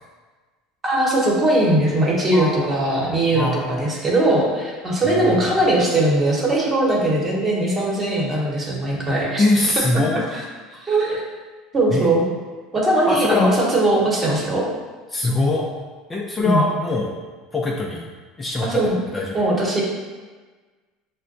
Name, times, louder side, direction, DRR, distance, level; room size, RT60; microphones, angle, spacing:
voice 1, 0.8-9.4 9.8-10.0 10.3-10.4 10.8-11.2 11.7-12.2 12.7-14.7 16.4-16.6 18.6-19.0 19.3-19.8, right 1 dB, 25° right, -4 dB, 1.0 m, -20 dB
voice 2, 2.3-2.7 3.3-3.9 5.0-5.5 9.4-10.2 11.9-12.1 13.1-13.5 15.1-15.7 16.1-17.1 17.5-18.1 18.4-18.8 19.1-19.4, left 2 dB, 20° left, -3 dB, 0.4 m, -22 dB
5.6 x 2.2 x 2.5 m, 1.4 s
supercardioid pair, 105°, 0 cm